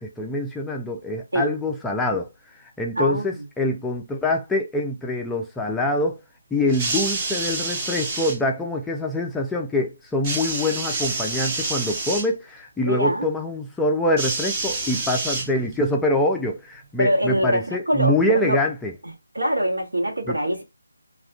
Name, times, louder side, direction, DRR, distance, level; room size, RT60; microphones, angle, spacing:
voice 1, 0.0-2.3 2.8-6.2 6.5-18.9 20.3-20.4, left 1 dB, 5° left, 0.3 m, -25 dB
voice 2, 3.0-3.3 12.8-13.3 17.0-18.6 19.3-20.6, equal, 80° right, 1.2 m, -23 dB
sound 1, 6.7-8.4 10.2-12.3 14.2-15.9 16.8-16.9, right 3 dB, 25° right, 0.7 m, -28 dB
3.5 x 2.4 x 2.3 m
figure-of-eight pair, 155°, 0 cm